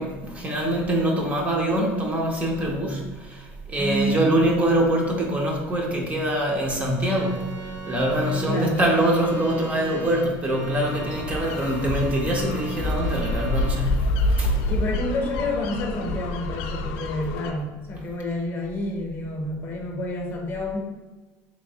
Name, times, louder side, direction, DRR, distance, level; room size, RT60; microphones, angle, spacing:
voice 1, 0.0-14.6, right 1 dB, 25° right, 0 dB, 0.5 m, -24 dB
voice 2, 3.8-4.4 8.5-8.8 14.7-20.8, left 1 dB, 35° left, 1 dB, 0.7 m, -29 dB
Organ, 7.0-13.8, right 1 dB, 65° right, 1.4 m, -37 dB
sound 1, 10.8-17.5, left 1 dB, 80° left, 0.4 m, -27 dB
3.1 x 3.1 x 2.7 m, 1.3 s
cardioid pair, 130°, 6 cm